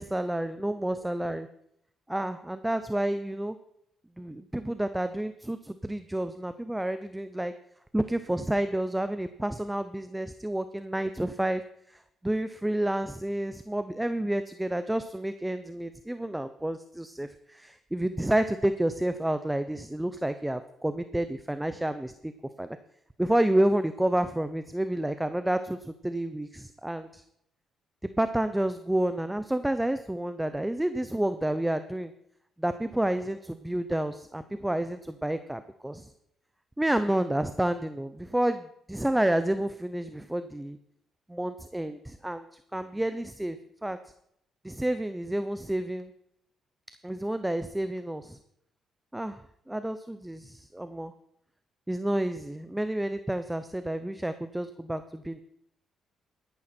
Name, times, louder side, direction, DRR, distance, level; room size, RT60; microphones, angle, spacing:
voice 1, 0.0-1.5 2.1-3.6 4.2-7.5 7.9-11.6 12.2-22.3 22.6-22.7 23.2-27.2 28.2-32.1 32.6-36.1 36.8-40.8 41.3-42.4 42.7-44.0 44.6-46.1 47.0-48.4 49.1-49.4 49.7-51.1 51.9-55.4, right 1 dB, 10° right, 11 dB, 0.7 m, -29 dB
13.0 x 11.5 x 4.4 m, 0.74 s
cardioid pair, 90°, 0 cm